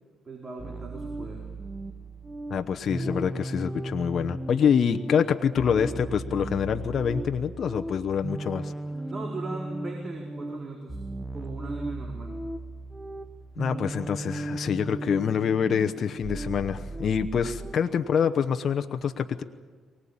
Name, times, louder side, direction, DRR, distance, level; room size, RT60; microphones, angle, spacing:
voice 1, 0.3-1.4 9.0-11.0 11.3-12.3, right 2 dB, 35° right, 0 dB, 4.4 m, -38 dB
sound 1, 0.6-17.7, right 2 dB, 10° right, 1.0 m, -36 dB
voice 2, 2.5-8.7 13.6-19.4, left 7 dB, 55° left, 7 dB, 1.0 m, -26 dB
24.0 x 18.5 x 8.8 m, 1.5 s
cardioid pair, 90°, 0 cm